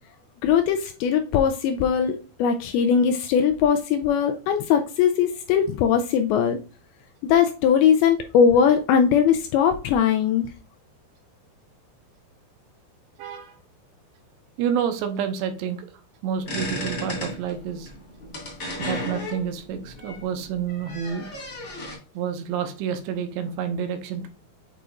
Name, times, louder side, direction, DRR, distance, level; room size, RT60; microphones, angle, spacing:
voice 1, 0.4-6.6 7.2-10.5, left 7 dB, 85° left, 2.2 m, -20 dB
voice 2, 13.2-13.6 14.6-15.9 16.2-17.9 18.8-21.3 22.1-24.3, right 8 dB, 85° right, 2.9 m, -29 dB
sound 1, 16.4-22.0, equal, 65° left, 0.7 m, -34 dB
8.1 x 5.0 x 2.4 m
omnidirectional pair, 5.0 m